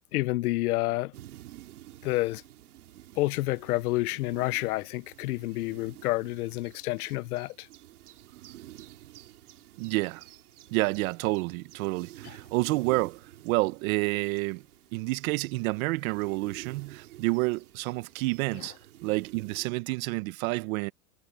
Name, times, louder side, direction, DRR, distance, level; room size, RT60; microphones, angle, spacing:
voice 1, 0.1-1.1 2.0-2.4 3.2-7.7 12.2-12.3 18.5-18.7, left 19 dB, 85° left, 0.8 m, -29 dB
sound 1, 1.1-19.7, right 15 dB, 90° right, 3.5 m, -50 dB
voice 2, 9.8-10.2 10.7-14.6 14.9-18.7 19.0-20.9, right 23 dB, 70° right, 1.3 m, -29 dB
supercardioid pair, 110°, 43 cm